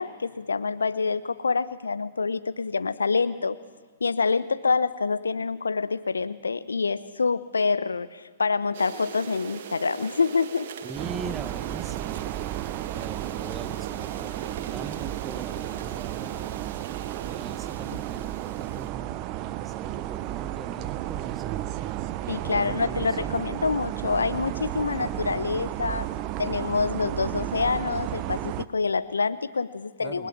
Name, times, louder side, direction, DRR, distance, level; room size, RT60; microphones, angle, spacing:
voice 1, 0.0-3.6 4.0-10.7 22.3-26.1 26.4-30.3, left 4 dB, 80° left, 14 dB, 1.0 m, -26 dB
sound 1, 8.7-18.9, right 8 dB, 50° right, 2.2 m, -40 dB
voice 2, 10.8-12.3 12.9-16.7 17.2-21.6 22.4-23.3 30.0-30.3, right 4 dB, 15° right, 8 dB, 2.0 m, -41 dB
sound 2, 11.0-28.7, right 14 dB, 35° right, 0.8 m, -33 dB
29.0 x 20.5 x 7.6 m, 1.3 s
figure-of-eight pair, 110°, 0 cm